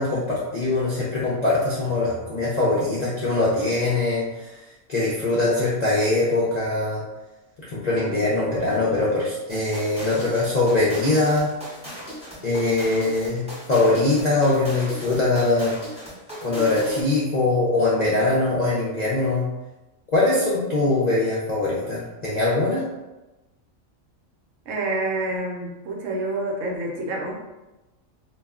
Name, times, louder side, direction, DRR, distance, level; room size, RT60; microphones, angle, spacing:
voice 1, 0.0-4.6 4.9-7.0 7.7-11.5 12.4-15.7 16.4-19.5 20.1-22.8, left 2 dB, 55° left, -8 dB, 0.4 m, -22 dB
sound 1, 9.5-17.2, equal, 10° right, 0.4 m, -37 dB
voice 2, 24.7-27.3, right 2 dB, 70° right, -1 dB, 0.9 m, -27 dB
2.3 x 2.1 x 3.5 m, 1.1 s
omnidirectional pair, 1.4 m